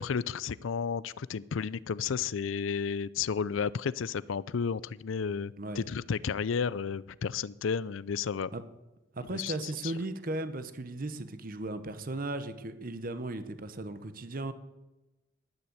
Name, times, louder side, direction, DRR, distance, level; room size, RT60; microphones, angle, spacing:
voice 1, 0.0-8.5 9.3-9.9, left 6 dB, 90° left, 20 dB, 0.5 m, -32 dB
voice 2, 9.1-14.5, right 2 dB, 45° right, 11 dB, 1.0 m, -36 dB
12.0 x 9.8 x 8.0 m, 1.0 s
head